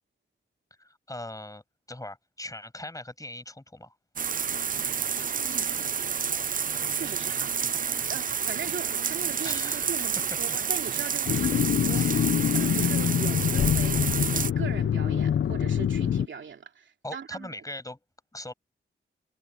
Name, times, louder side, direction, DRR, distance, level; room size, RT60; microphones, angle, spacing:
voice 1, 0.8-1.6 1.9-4.0 9.4-10.0 10.5-10.6 11.5-12.4 17.0-18.0 18.3-18.5, left 1 dB, 15° left, 7.2 m, -41 dB
sound 1, 4.2-14.5, right 7 dB, 45° right, 0.5 m, -29 dB
voice 2, 4.7-5.9 6.9-7.5 8.1-12.1 12.5-17.5, right 6 dB, 75° right, 2.8 m, -40 dB
sound 2, 11.3-16.3, left 9 dB, 75° left, 0.7 m, -25 dB
cardioid pair, 60°, 20 cm